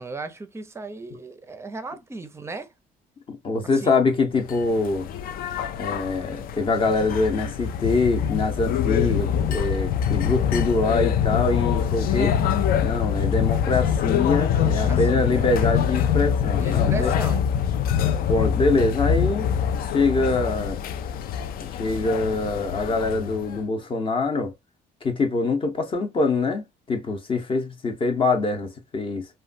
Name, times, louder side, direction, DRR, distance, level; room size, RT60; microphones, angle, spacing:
voice 1, 0.0-2.7 3.7-4.0 14.5-15.4 16.5-17.4, right 3 dB, 15° right, 0.5 m, -36 dB
voice 2, 3.3-5.1 5.8-12.4 12.8-17.1 18.3-19.5 19.9-20.8 21.6-24.5 25.0-29.3, left 3 dB, 30° left, 0.7 m, -24 dB
sound 1, 4.4-23.6, left 8 dB, 60° left, 0.4 m, -24 dB
3.0 x 2.2 x 2.5 m
cardioid pair, 110°, 17 cm